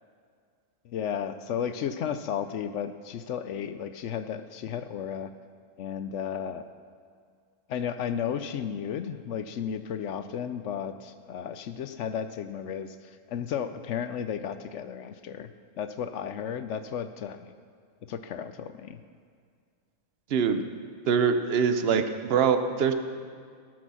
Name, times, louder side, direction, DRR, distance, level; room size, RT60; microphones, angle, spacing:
voice 1, 0.8-5.3 5.8-6.6 7.7-13.0 13.3-15.5 15.8-17.5 18.1-19.0, left 8 dB, 70° left, 10 dB, 0.8 m, -33 dB
voice 2, 20.3-20.6 21.1-22.0 22.3-22.9, right 6 dB, 55° right, 9 dB, 0.9 m, -23 dB
17.0 x 6.3 x 6.1 m, 2.1 s
omnidirectional pair, 1.4 m